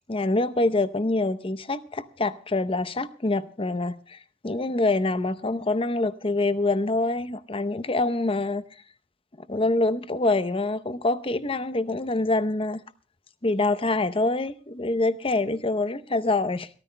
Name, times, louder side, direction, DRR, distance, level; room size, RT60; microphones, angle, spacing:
voice 1, 0.1-8.6 9.4-12.8 13.4-16.7, left 2 dB, 30° left, 0.7 m, -25 dB
30.0 x 14.0 x 2.2 m
head